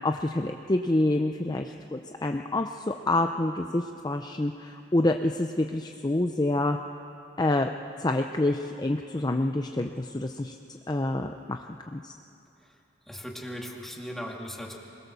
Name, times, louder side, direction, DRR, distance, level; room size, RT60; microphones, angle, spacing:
voice 1, 0.0-6.8 7.4-7.7 8.0-10.6 10.9-11.6 11.9-12.1, left 2 dB, 20° left, 5 dB, 0.6 m, -27 dB
voice 2, 13.1-14.8, equal, ahead, -1 dB, 2.3 m, -38 dB
23.5 x 21.0 x 7.0 m, 2.7 s
head